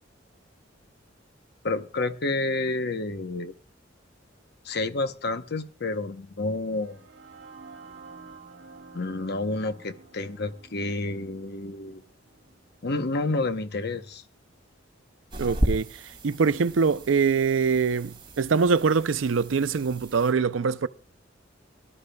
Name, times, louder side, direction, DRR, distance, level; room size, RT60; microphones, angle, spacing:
voice 1, 1.6-3.5 4.6-7.0 8.9-12.0 12.8-14.2, left 2 dB, 55° left, 0.9 m, -29 dB
sound 1, 6.6-14.5, right 4 dB, 65° right, 1.8 m, -50 dB
sound 2, 15.3-20.3, right 1 dB, 25° right, 2.6 m, -34 dB
voice 2, 15.4-20.9, right 5 dB, 85° right, 0.5 m, -24 dB
23.5 x 12.0 x 2.3 m
head